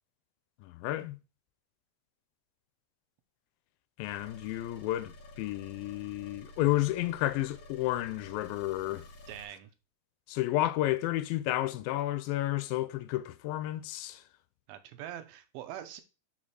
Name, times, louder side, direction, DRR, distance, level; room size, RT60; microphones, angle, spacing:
voice 1, 0.6-1.2 4.0-9.1 10.3-14.2, left 15 dB, 85° left, 2.4 m, -31 dB
sound 1, 4.0-9.5, left 1 dB, 60° left, 2.6 m, -51 dB
voice 2, 9.3-9.7 14.7-16.0, right 11 dB, 90° right, 2.6 m, -43 dB
5.9 x 4.3 x 4.7 m
omnidirectional pair, 4.2 m